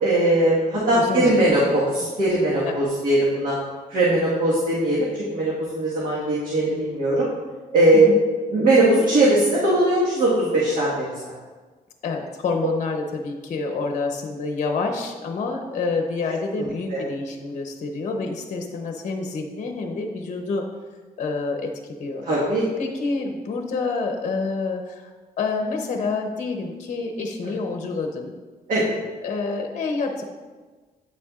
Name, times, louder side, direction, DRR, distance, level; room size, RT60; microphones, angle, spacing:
voice 1, 0.0-3.5 3.9-7.3 7.7-8.1 8.5-11.3 16.6-17.0 22.2-22.7 27.4-27.5 28.7-28.9, right 1 dB, 60° right, -6 dB, 1.5 m, -20 dB
voice 2, 0.9-1.5 2.7-2.8 8.1-8.2 12.0-20.7 21.2-21.7 22.0-22.3 22.8-25.1 25.4-28.3 29.2-30.2, left 3 dB, 50° left, 3 dB, 0.8 m, -27 dB
8.8 x 6.9 x 2.4 m, 1.4 s
cardioid pair, 125°, 15 cm